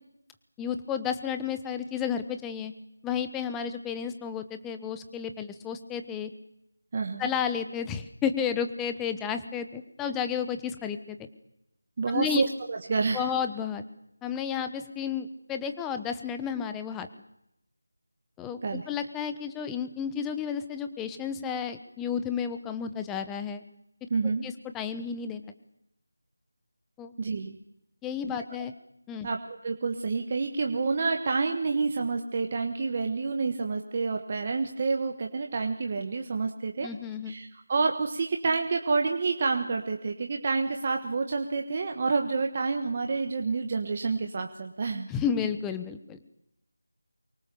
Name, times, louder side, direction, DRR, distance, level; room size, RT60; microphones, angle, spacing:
voice 1, 0.6-2.7 3.0-6.3 7.2-11.2 12.1-12.4 13.1-13.8 14.2-17.1 18.4-23.6 24.4-25.4 27.0-27.1 28.0-28.7 29.1-29.3 36.8-37.4 45.1-46.2, left 7 dB, 5° left, 9 dB, 1.0 m, -32 dB
voice 2, 6.9-7.3 12.0-13.3 18.6-18.8 24.1-24.5 27.2-27.6 29.2-36.9 37.3-45.1, right 4 dB, 30° right, 4 dB, 1.4 m, -28 dB
24.0 x 24.0 x 7.0 m, 0.81 s
figure-of-eight pair, 170°, 0 cm